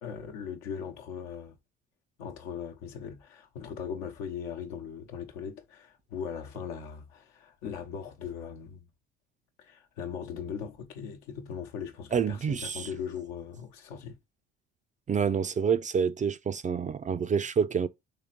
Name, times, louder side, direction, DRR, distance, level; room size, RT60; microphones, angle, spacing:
voice 1, 0.0-1.6 2.2-8.8 9.6-14.2, left 7 dB, 70° left, 1.0 m, -39 dB
voice 2, 12.1-12.9 15.1-17.9, right 6 dB, 25° right, 0.4 m, -27 dB
3.7 x 3.2 x 4.4 m
hypercardioid pair, 55°, 30 cm